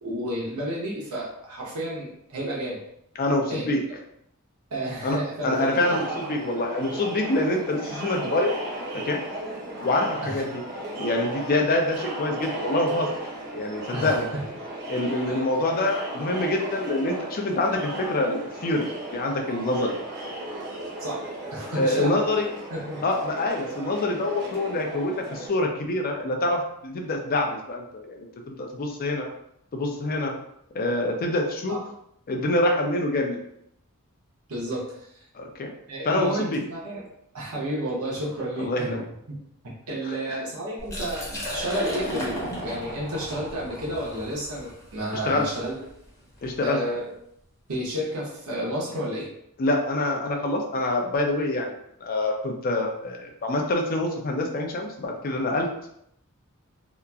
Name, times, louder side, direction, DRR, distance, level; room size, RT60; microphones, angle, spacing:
voice 1, 0.0-2.8 3.5-3.7 4.7-6.0 10.2-10.4 13.9-14.2 21.0-21.2 21.5-22.3 22.7-23.0 31.7-31.8 34.5-34.8 35.9-37.0 37.3-39.0 39.3-39.4 39.6-45.8 46.6-47.0 47.7-49.3, right 1 dB, 85° right, -5 dB, 0.8 m, -31 dB
voice 2, 3.2-3.8 5.0-8.5 9.1-9.2 9.8-10.6 11.0-13.1 13.5-14.3 14.9-18.9 19.1-19.9 21.7-22.5 23.0-29.3 29.7-30.3 30.7-31.8 32.3-33.4 35.3-35.7 36.1-36.6 38.6-39.0 40.0-40.4 45.2-45.5 46.4-46.8 49.6-51.7 52.0-55.7, left 2 dB, 40° left, 2 dB, 0.4 m, -26 dB
Crowd, 5.5-25.5, right 1 dB, 45° right, 0.7 m, -35 dB
Liquid, 40.8-46.5, equal, 15° left, 0.8 m, -35 dB
2.9 x 2.4 x 2.3 m, 0.73 s
head